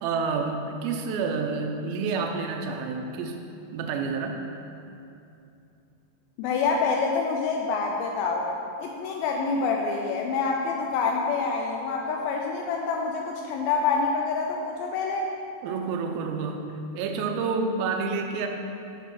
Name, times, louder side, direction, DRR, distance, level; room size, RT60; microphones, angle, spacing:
voice 1, 0.0-3.4 3.7-4.4 15.6-18.5, right 4 dB, 80° right, 4 dB, 2.3 m, -29 dB
voice 2, 6.4-8.5 8.8-15.3, left 4 dB, 85° left, 0 dB, 2.2 m, -27 dB
9.4 x 3.6 x 5.9 m, 2.7 s
omnidirectional pair, 4.7 m